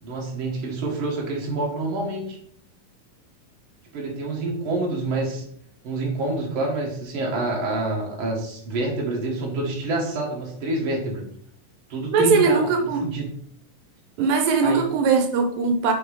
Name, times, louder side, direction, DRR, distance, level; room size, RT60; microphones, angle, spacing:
voice 1, 0.0-2.4 3.9-5.5 5.8-11.2 11.9-13.3 14.6-14.8, right 2 dB, 45° right, -2 dB, 2.2 m, -27 dB
voice 2, 12.1-13.0 14.2-15.9, right 5 dB, 85° right, 4 dB, 2.4 m, -20 dB
10.0 x 3.5 x 3.6 m, 0.63 s
omnidirectional pair, 4.0 m